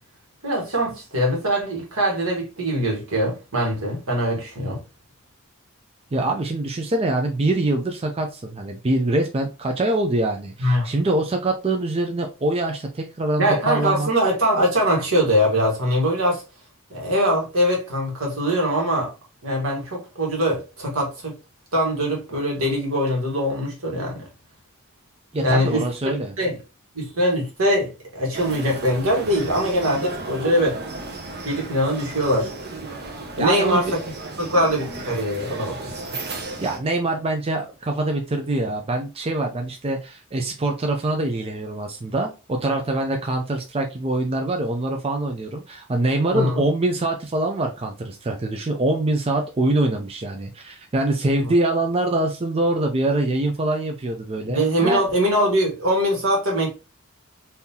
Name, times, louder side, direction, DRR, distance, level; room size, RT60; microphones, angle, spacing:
voice 1, 0.4-4.8 10.6-10.9 13.4-16.4 16.9-19.1 19.4-21.3 21.7-24.3 25.4-25.9 26.4-26.6 26.9-30.8 31.4-32.5 33.4-34.0 34.4-35.9 46.3-46.6 51.4-51.5 54.5-56.7, equal, 80° right, 1.6 m, -22 dB
voice 2, 6.1-14.1 25.3-26.3 33.4-33.9 36.6-55.0, right 2 dB, 30° right, 0.4 m, -24 dB
sound 1, 28.3-36.8, right 3 dB, 50° right, 0.8 m, -34 dB
3.7 x 2.7 x 2.8 m
head